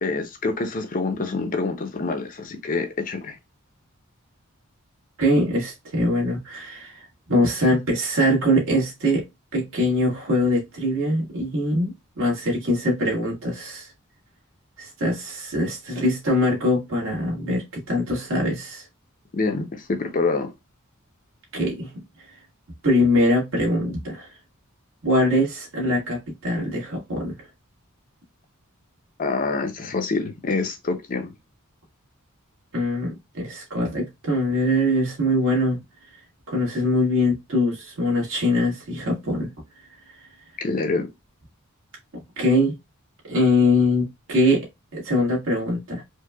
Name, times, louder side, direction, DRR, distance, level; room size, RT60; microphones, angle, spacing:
voice 1, 0.0-3.4 19.3-20.5 29.2-31.3 40.6-41.1, left 3 dB, 40° left, 0.6 m, -26 dB
voice 2, 5.2-9.2 9.5-13.9 14.8-18.8 21.5-21.9 22.8-24.3 25.0-27.3 32.7-35.8 36.5-39.5 42.4-42.7 43.2-44.6 44.9-46.0, left 1 dB, 65° right, 1.7 m, -22 dB
4.5 x 2.2 x 2.3 m
head